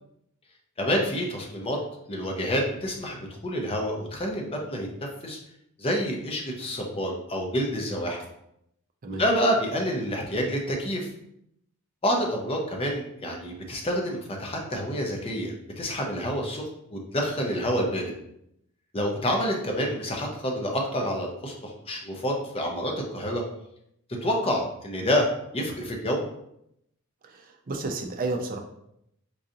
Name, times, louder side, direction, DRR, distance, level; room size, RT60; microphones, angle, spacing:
voice 1, 0.8-1.8 2.1-4.9 5.2-5.4 5.8-8.2 9.2-11.1 12.0-16.6 16.9-18.1 18.9-23.4 24.2-25.3 25.5-26.2, equal, 25° left, 1 dB, 0.6 m, -28 dB
voice 2, 27.2-28.6, right 3 dB, 40° right, 4 dB, 0.5 m, -32 dB
4.6 x 2.6 x 2.7 m, 0.77 s
head